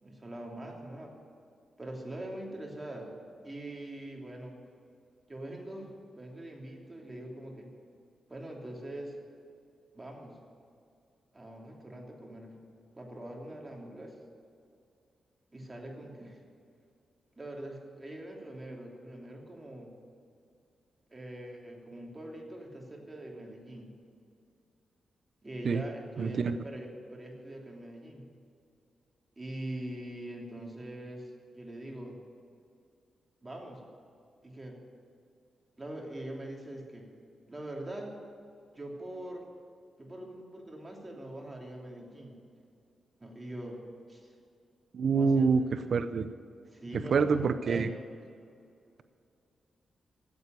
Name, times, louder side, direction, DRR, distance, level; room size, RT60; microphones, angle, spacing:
voice 1, 0.0-1.1 1.8-3.1 3.4-4.5 5.3-7.7 8.3-9.2 9.9-10.4 11.3-12.6 12.9-14.2 15.5-16.4 17.4-19.9 21.1-23.9 25.4-28.3 29.4-32.2 33.4-33.8 34.4-34.8 35.8-37.1 37.5-38.2 38.7-39.5 40.0-42.4 43.2-43.8 44.1-44.3 45.1-45.5 46.7-47.9, right 1 dB, 20° right, 0 dB, 3.0 m, -43 dB
voice 2, 26.2-26.6 44.9-46.3 47.1-47.9, right 5 dB, 65° right, 11 dB, 0.6 m, -26 dB
14.5 x 8.2 x 9.5 m, 2.4 s
cardioid pair, 90°, 0 cm